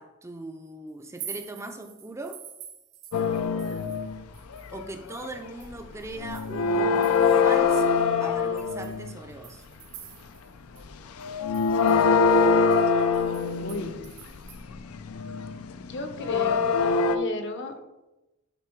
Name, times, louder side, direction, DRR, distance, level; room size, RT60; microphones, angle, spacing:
voice 1, 0.0-2.4 4.7-9.6 16.2-16.7, right 2 dB, 15° right, 5 dB, 0.4 m, -40 dB
sound 1, 1.0-4.1 4.3-7.5 8.0-8.1 8.6-10.5 10.8-10.9 11.2-14.6, right 9 dB, 80° right, 0.9 m, -46 dB
sound 2, 3.1-4.2 4.5-4.8 5.1-5.9 6.1-9.2 10.8-10.9 11.2-17.2, left 5 dB, 90° left, 0.5 m, -24 dB
voice 2, 3.4-4.0 13.6-14.1 15.8-17.8, left 2 dB, 55° left, 6 dB, 0.8 m, -35 dB
9.1 x 3.8 x 4.5 m, 1.0 s
head